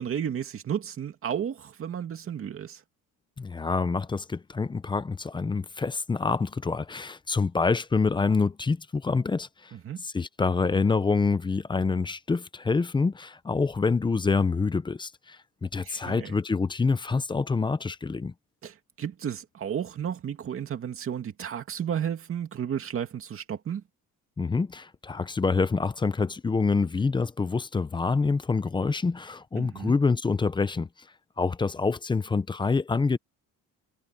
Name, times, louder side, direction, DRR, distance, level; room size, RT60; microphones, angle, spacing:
voice 1, 0.0-2.8 9.7-10.0 15.8-16.4 18.6-23.8 29.6-29.9, right 8 dB, 40° right, 2.4 m, -33 dB
voice 2, 3.4-9.7 10.0-18.3 24.4-30.9 31.4-33.2, left 4 dB, 15° left, 0.6 m, -26 dB
cardioid pair, 170°, 34 cm